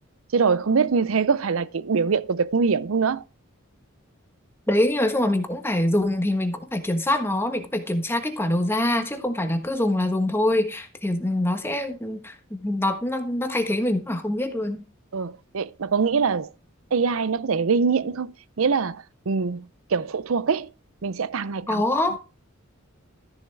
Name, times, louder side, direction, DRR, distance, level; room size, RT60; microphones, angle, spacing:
voice 1, 0.3-3.2 15.1-16.5 16.9-19.7 19.9-20.7 21.0-21.8, right 5 dB, 70° right, 0.5 m, -23 dB
voice 2, 4.7-14.8 21.7-22.2, left 1 dB, 10° left, 1.3 m, -24 dB
13.5 x 7.3 x 3.4 m
head